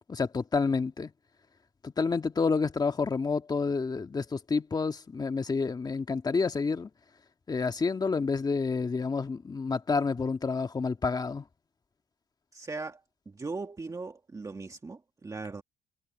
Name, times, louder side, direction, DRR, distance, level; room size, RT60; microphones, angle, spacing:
voice 1, 0.1-1.1 1.8-6.9 7.5-11.4, left 4 dB, 25° left, 1.6 m, -29 dB
voice 2, 12.5-13.0 13.3-15.6, right 3 dB, 20° right, 1.5 m, -39 dB
cardioid pair, 110°, 17 cm